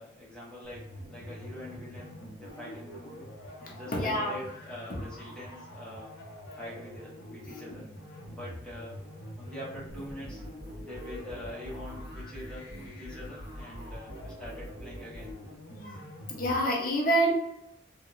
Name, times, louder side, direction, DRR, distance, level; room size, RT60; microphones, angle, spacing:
voice 1, 0.0-2.1 2.4-3.3 3.7-6.1 6.6-7.9 8.3-9.0 9.4-10.4 10.8-15.4, left 1 dB, 5° left, -7 dB, 0.7 m, -44 dB
sound 1, 0.6-16.6, equal, 85° left, 0.8 m, -46 dB
voice 2, 3.6-4.5 4.9-5.0 15.8-16.0 16.3-17.3, right 1 dB, 45° left, -1 dB, 0.5 m, -28 dB
sound 2, 9.9-15.4, equal, 65° right, 0.7 m, -44 dB
2.7 x 2.1 x 2.4 m, 0.83 s
head